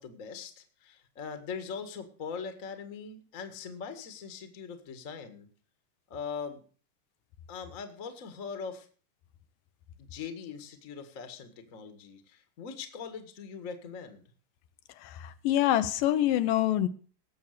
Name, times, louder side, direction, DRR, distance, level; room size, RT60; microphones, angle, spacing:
voice 1, 0.0-5.5 6.1-6.6 7.5-8.9 10.0-14.2, left 6 dB, 35° left, 1.4 m, -41 dB
voice 2, 15.0-16.9, left 13 dB, 85° left, 2.5 m, -26 dB
18.5 x 7.1 x 6.7 m
omnidirectional pair, 3.9 m